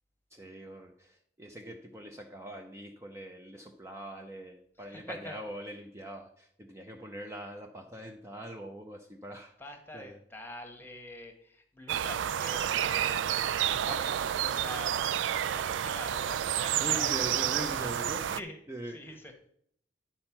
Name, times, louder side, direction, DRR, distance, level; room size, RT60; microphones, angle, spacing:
voice 1, 0.3-9.5 9.9-10.2 13.7-14.0 16.8-18.2 18.7-19.2, equal, 15° right, 2 dB, 0.6 m, -42 dB
voice 2, 4.8-5.4 9.6-17.7 18.2-18.6 18.8-19.3, left 1 dB, 10° left, 5 dB, 1.2 m, -45 dB
sound 1, 11.9-18.4, right 10 dB, 85° right, 0.3 m, -30 dB
10.5 x 4.4 x 5.9 m, 0.68 s
head